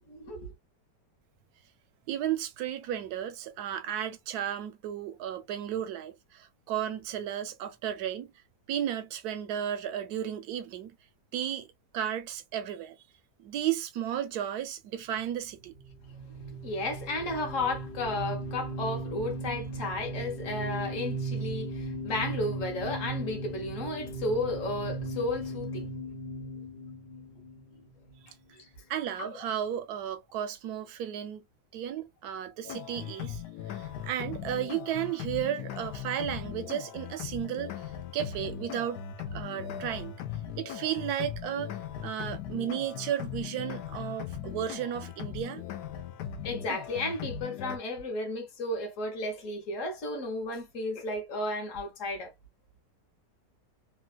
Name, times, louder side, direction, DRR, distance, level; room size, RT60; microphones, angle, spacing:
voice 1, 0.1-0.5 16.4-25.9 28.5-28.7 29.2-29.4 46.4-52.3, left 2 dB, 50° left, 1.4 m, -33 dB
voice 2, 2.1-8.3 8.7-11.0 11.3-11.7 11.9-13.0 13.4-15.8 28.9-31.4 31.7-33.4 33.7-39.0 39.3-40.2 40.6-41.8 42.0-45.6, right 10 dB, 70° right, 1.0 m, -34 dB
sound 1, 15.7-28.2, right 2 dB, 35° left, 0.9 m, -37 dB
sound 2, 32.6-47.8, left 9 dB, 70° left, 1.0 m, -39 dB
3.4 x 2.4 x 2.2 m
omnidirectional pair, 1.9 m